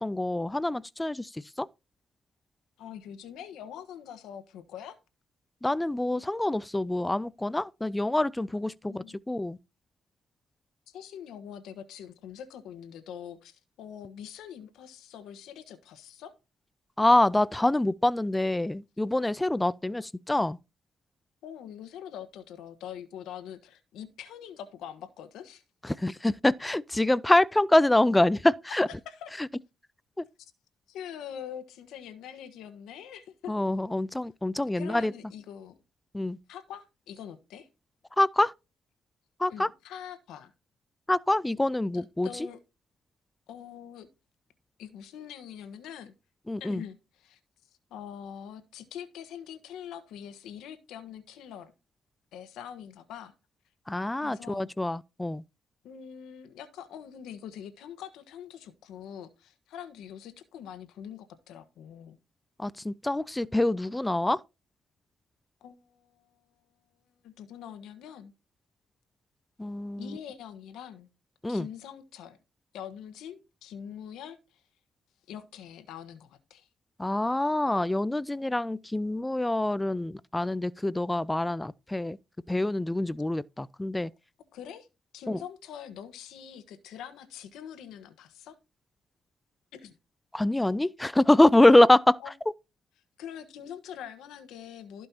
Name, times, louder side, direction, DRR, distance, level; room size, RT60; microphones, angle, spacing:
voice 1, 0.0-1.7 5.6-9.6 17.0-20.6 25.8-28.9 33.5-35.1 36.1-36.4 38.2-38.5 39.4-39.7 41.1-42.3 46.5-46.8 53.9-55.4 62.6-64.4 69.6-70.2 71.4-71.7 77.0-82.2 82.5-84.1 85.3-85.4 90.3-92.2, left 1 dB, 10° left, 0.3 m, -25 dB
voice 2, 2.8-5.0 8.8-9.2 10.9-16.3 21.4-25.6 28.7-28.8 29.0-29.3 30.4-30.5 30.9-33.5 34.7-35.8 36.5-37.7 39.5-40.5 41.9-42.6 43.5-44.1 44.8-46.1 46.6-47.4 47.9-51.7 52.3-53.3 54.2-54.7 55.8-62.2 65.6-66.4 67.2-68.3 70.0-71.1 71.5-72.4 72.7-74.6 75.3-76.7 84.5-84.9 85.1-88.6 89.7-89.9 92.2-92.3 93.2-95.1, left 9 dB, 85° left, 1.3 m, -44 dB
15.5 x 5.3 x 2.9 m
cardioid pair, 90°, 0 cm